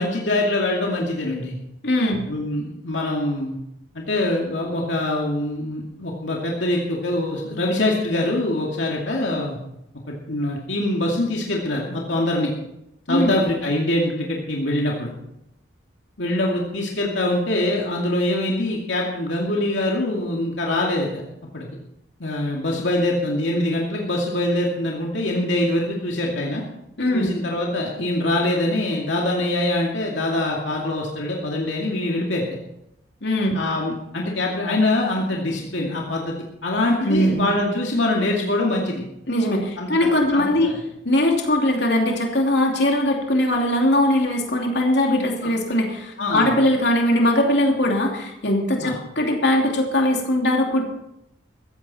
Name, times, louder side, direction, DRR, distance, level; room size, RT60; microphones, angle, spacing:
voice 1, 0.0-1.6 2.2-3.6 3.9-9.6 10.1-12.5 13.1-15.1 16.2-21.2 21.5-21.7 22.2-26.6 27.1-32.4 33.5-36.4 36.6-39.0 39.8-40.8 45.4-45.5 46.2-46.5 48.8-49.0, left 1 dB, 80° left, -1 dB, 2.4 m, -24 dB
voice 2, 1.8-2.2 13.1-13.3 27.0-27.3 33.2-33.6 37.0-37.5 39.3-40.7 41.0-50.8, left 1 dB, 65° left, 1 dB, 2.8 m, -20 dB
15.5 x 15.0 x 4.3 m, 0.82 s
head